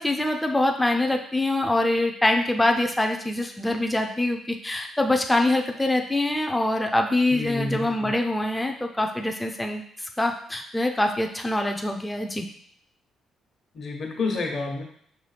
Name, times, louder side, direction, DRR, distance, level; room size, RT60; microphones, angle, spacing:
voice 1, 0.0-12.5, left 1 dB, 10° left, 3 dB, 0.4 m, -24 dB
voice 2, 7.3-8.1 13.7-14.8, left 3 dB, 50° left, 1 dB, 1.0 m, -29 dB
5.4 x 2.2 x 3.3 m, 0.63 s
cardioid pair, 90°, 0 cm